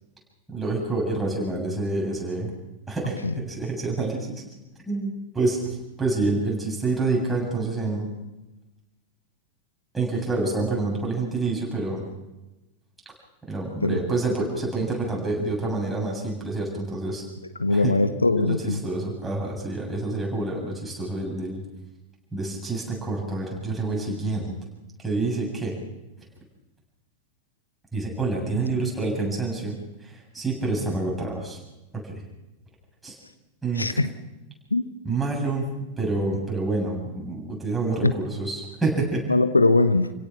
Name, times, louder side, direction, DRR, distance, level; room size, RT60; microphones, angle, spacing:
voice 1, 0.5-2.5 2.9-4.3 4.9-8.1 9.9-12.0 13.5-17.2 17.7-17.9 18.4-21.6 22.3-24.5 25.0-25.8 27.9-31.6 31.9-32.1 33.0-33.1 33.6-33.9 35.0-35.7 36.0-39.2, right 3 dB, 5° right, -2 dB, 7.7 m, -27 dB
voice 2, 17.4-18.8 28.7-28.8 33.8-34.1 34.7-34.9 38.0-38.1 39.3-40.1, left 2 dB, 80° left, 12 dB, 0.9 m, -21 dB
29.5 x 17.0 x 6.2 m, 1.0 s
figure-of-eight pair, 90°, 0 cm